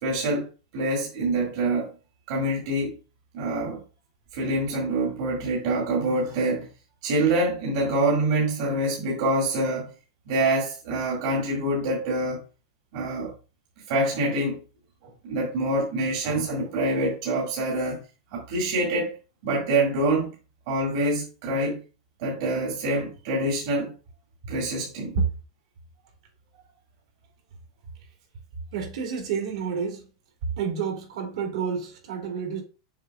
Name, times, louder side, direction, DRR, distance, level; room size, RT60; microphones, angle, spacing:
voice 1, 0.0-1.9 2.3-3.0 3.3-3.8 4.3-6.7 7.0-9.9 10.3-12.4 12.9-13.3 13.9-14.6 15.0-18.0 18.3-19.1 19.4-20.3 20.7-21.8 22.2-23.9 24.5-25.2, right 1 dB, 50° right, 2.1 m, -26 dB
voice 2, 28.7-30.1 30.6-32.6, right 6 dB, 70° right, 2.6 m, -29 dB
7.2 x 5.6 x 2.4 m
supercardioid pair, 170°, 3 cm